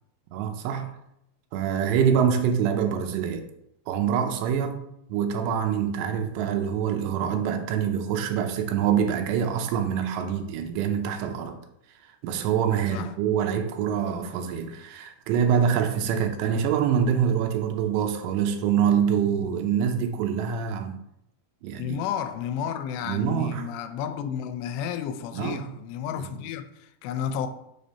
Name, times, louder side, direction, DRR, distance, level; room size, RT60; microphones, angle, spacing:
voice 1, 0.3-1.0 1.5-3.4 3.9-11.6 12.2-21.0 21.6-22.0 23.0-23.7 25.3-25.6 26.2-26.3, right 8 dB, 85° right, 2.9 m, -25 dB
voice 2, 21.8-27.5, left 8 dB, 85° left, 2.8 m, -32 dB
6.5 x 5.2 x 4.2 m
omnidirectional pair, 4.9 m